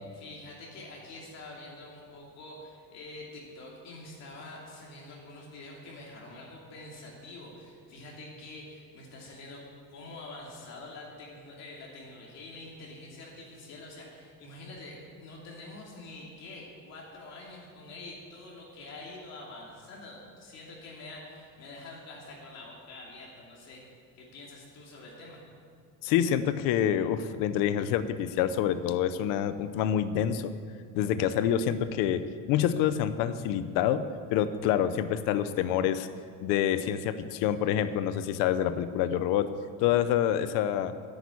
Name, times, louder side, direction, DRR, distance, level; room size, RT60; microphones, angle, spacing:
voice 1, 0.1-9.6 9.9-23.8 24.1-25.4, left 2 dB, 55° left, -3 dB, 2.8 m, -46 dB
voice 2, 26.0-30.5 30.9-36.1 36.4-39.5 39.8-40.9, left 10 dB, 85° left, 13 dB, 0.8 m, -27 dB
10.5 x 9.1 x 8.4 m, 2.1 s
cardioid pair, 145°, 32 cm